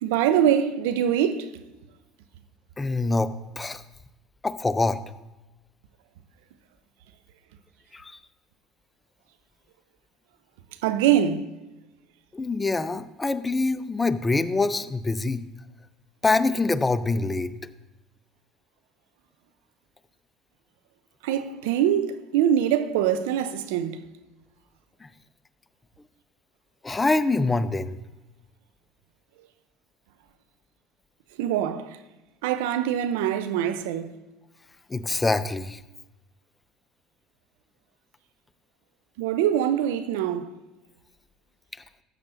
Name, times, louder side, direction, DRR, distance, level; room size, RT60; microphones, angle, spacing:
voice 1, 0.0-1.5 10.8-11.5 21.2-24.0 31.4-32.0 32.4-34.1 39.2-40.5, right 10 dB, 75° right, 0.6 m, -23 dB
voice 2, 2.8-3.8 4.4-5.0 7.9-8.2 12.3-15.4 16.2-17.5 25.0-25.1 26.8-28.0 34.9-35.8, left 3 dB, 20° left, 0.6 m, -25 dB
13.0 x 8.4 x 2.7 m
hypercardioid pair, 65°, 0 cm